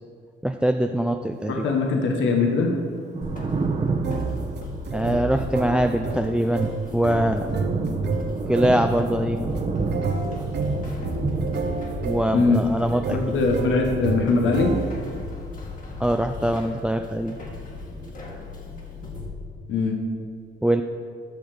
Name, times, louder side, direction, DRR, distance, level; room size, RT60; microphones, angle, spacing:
voice 1, 0.4-1.7 4.9-7.5 8.5-9.5 12.0-13.2 16.0-17.4 20.6-20.8, right 1 dB, 5° right, 6 dB, 0.4 m, -23 dB
voice 2, 1.5-2.7 12.3-12.6 13.1-14.7 19.7-20.0, left 4 dB, 75° left, 2 dB, 1.4 m, -21 dB
Thunder, 2.9-17.4 17.6-18.9, right 3 dB, 35° right, 1.1 m, -32 dB
sound 1, 3.2-19.3, left 3 dB, 40° left, 2.0 m, -37 dB
sound 2, 4.0-15.2, right 4 dB, 60° right, 1.0 m, -30 dB
12.5 x 6.0 x 5.1 m, 2.2 s
cardioid pair, 90°, 20 cm